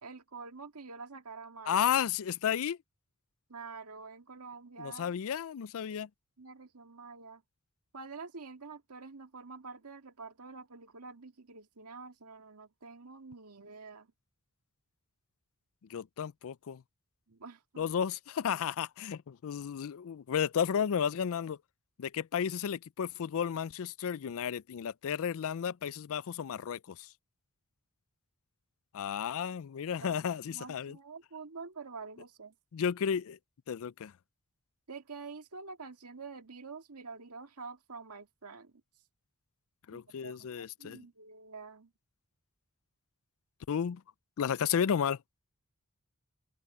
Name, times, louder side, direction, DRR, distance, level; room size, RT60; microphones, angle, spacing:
voice 1, 0.0-1.8 3.5-5.1 6.4-7.4 7.9-14.1 17.3-17.9 30.0-30.2 30.5-32.5 34.9-38.8 39.9-41.9, right 4 dB, 85° right, 1.9 m, -47 dB
voice 2, 1.7-2.8 4.8-6.1 15.9-16.8 17.8-21.6 22.0-27.1 28.9-31.0 32.7-33.4 33.7-34.1 39.9-41.0 43.7-44.0 44.4-45.2, left 8 dB, 65° left, 0.4 m, -33 dB
open air
head